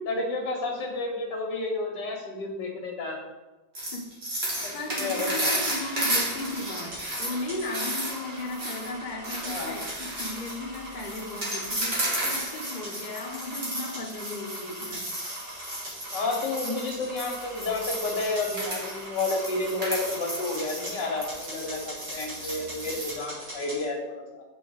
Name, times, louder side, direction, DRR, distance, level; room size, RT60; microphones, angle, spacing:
voice 1, 0.1-3.2 4.6-5.5 9.4-9.8 16.1-24.4, left 2 dB, 70° left, 1 dB, 2.0 m, -31 dB
sound 1, 3.8-23.1, right 1 dB, 35° right, 2.0 m, -33 dB
voice 2, 3.9-15.1, left 2 dB, 40° left, 1 dB, 0.7 m, -36 dB
sound 2, 5.0-23.8, right 1 dB, 75° right, 3.4 m, -42 dB
8.1 x 5.0 x 3.9 m, 1.1 s
omnidirectional pair, 2.0 m